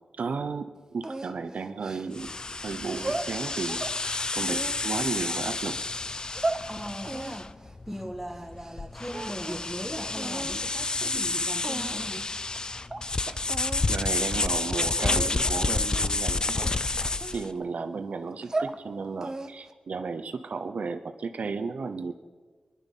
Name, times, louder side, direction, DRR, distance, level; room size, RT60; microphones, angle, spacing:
voice 1, 0.2-2.3 2.6-5.7 13.2-13.4 13.9-16.7 17.1-22.1, right 4 dB, 70° right, 9 dB, 0.7 m, -34 dB
sound 1, 1.0-2.4 2.9-4.0 4.4-5.5 6.1-6.6 7.0-8.8 9.1-9.7 10.1-10.6 11.2-11.3 11.6-12.2 12.5-12.6 12.9-13.1 13.5-13.9 14.2-14.4 15.0-15.4 15.9-16.2 16.6-17.8 18.3-18.8 19.2-19.7, right 2 dB, 25° right, 0.8 m, -35 dB
sound 2, 2.1-17.5, left 3 dB, 30° left, 0.4 m, -30 dB
voice 2, 6.7-7.6 7.9-12.3, equal, ahead, 4 dB, 1.5 m, -38 dB
20.5 x 11.0 x 5.4 m, 1.4 s
wide cardioid pair, 105°, 2 cm